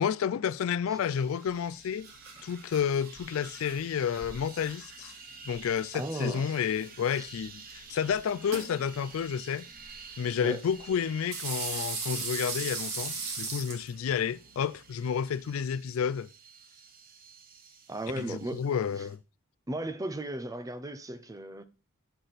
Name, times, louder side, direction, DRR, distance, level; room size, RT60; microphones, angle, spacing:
voice 1, 0.0-2.1 2.4-5.1 5.5-9.6 10.2-16.3 18.2-19.2, left 7 dB, 65° left, 0.3 m, -30 dB
sound 1, 0.9-19.2, right 5 dB, 40° right, 1.0 m, -50 dB
sound 2, 1.5-15.7, right 4 dB, 65° right, 2.2 m, -41 dB
voice 2, 5.9-6.4 7.2-7.3 10.4-10.6 11.7-11.9 17.9-18.6 19.0-19.1 19.7-21.6, right 1 dB, 15° right, 0.5 m, -36 dB
6.6 x 6.0 x 4.0 m
head